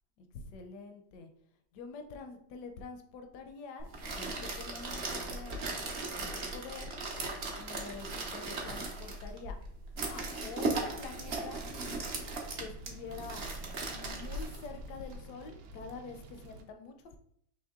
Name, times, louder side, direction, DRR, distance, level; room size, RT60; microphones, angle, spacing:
voice 1, 0.2-1.3 1.7-5.9 6.2-7.0 7.6-9.6 10.0-11.6 12.6-13.4 13.9-17.2, left 4 dB, 70° left, 6 dB, 1.0 m, -47 dB
sound 1, 3.8-15.1, right 2 dB, 90° right, 0.5 m, -38 dB
sound 2, 11.1-16.6, right 3 dB, 70° right, 1.0 m, -51 dB
4.4 x 3.0 x 3.6 m, 0.70 s
omnidirectional pair, 2.3 m